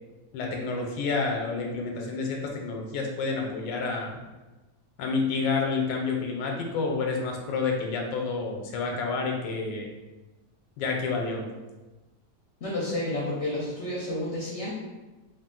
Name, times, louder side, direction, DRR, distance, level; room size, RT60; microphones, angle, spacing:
voice 1, 0.3-4.2 5.0-9.9 10.8-11.4, left 4 dB, 90° left, 1 dB, 1.3 m, -29 dB
voice 2, 12.6-14.7, left 1 dB, 60° left, -4 dB, 0.7 m, -30 dB
3.5 x 2.5 x 3.7 m, 1.2 s
omnidirectional pair, 1.9 m